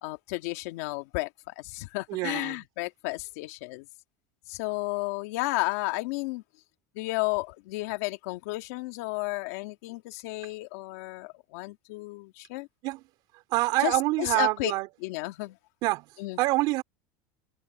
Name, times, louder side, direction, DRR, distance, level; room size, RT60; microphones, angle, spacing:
voice 1, 0.0-3.9 4.5-6.4 6.9-12.7 13.8-14.7 15.0-15.6 16.2-16.4, left 22 dB, 75° left, 1.9 m, -33 dB
voice 2, 2.1-2.6 12.8-13.0 13.5-14.9 15.8-16.1 16.4-16.8, right 20 dB, 55° right, 4.2 m, -26 dB
supercardioid pair, 140°, 8 cm